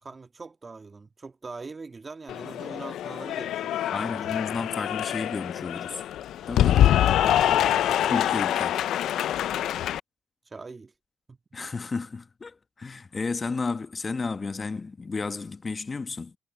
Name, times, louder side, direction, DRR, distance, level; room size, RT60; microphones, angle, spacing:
voice 1, 0.0-4.3 7.1-8.1 10.4-10.9 11.3-11.4, right 4 dB, 30° right, 1.6 m, -42 dB
Cheering / Applause, 2.3-10.0, left 12 dB, 75° left, 0.5 m, -25 dB
voice 2, 3.9-6.0 6.5-7.0 8.1-8.8 11.5-16.4, left 4 dB, 30° left, 1.1 m, -32 dB
cardioid pair, 90°, 0 cm